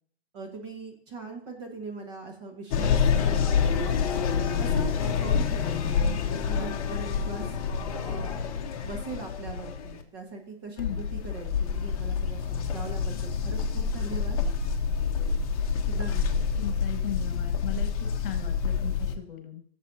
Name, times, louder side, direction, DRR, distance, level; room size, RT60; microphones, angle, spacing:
voice 1, 0.3-3.5 4.6-7.5 8.0-8.4 8.8-14.4 15.9-16.4, right 3 dB, 25° right, 2 dB, 1.7 m, -40 dB
sound 1, 2.7-10.0 10.8-19.1, left 6 dB, 35° left, 1.2 m, -27 dB
voice 2, 10.8-11.1 16.5-19.6, left 10 dB, 50° left, 6 dB, 1.8 m, -37 dB
17.0 x 7.4 x 2.8 m, 0.63 s
hypercardioid pair, 170°, 33 cm